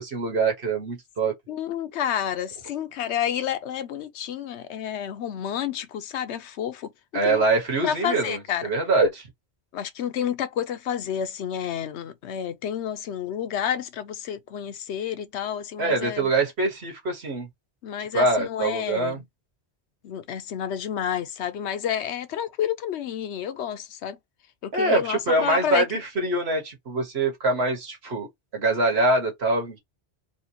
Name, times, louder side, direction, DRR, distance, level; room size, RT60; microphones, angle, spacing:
voice 1, 0.0-1.3 7.1-9.3 15.8-17.5 18.1-19.2 24.7-28.3 28.5-29.8, right 2 dB, 70° right, 1.7 m, -24 dB
voice 2, 1.5-6.9 7.2-7.4 7.8-8.7 9.7-16.3 17.8-19.2 20.0-24.2 24.6-25.9, left 9 dB, 90° left, 1.0 m, -30 dB
4.3 x 2.3 x 2.7 m
omnidirectional pair, 1.1 m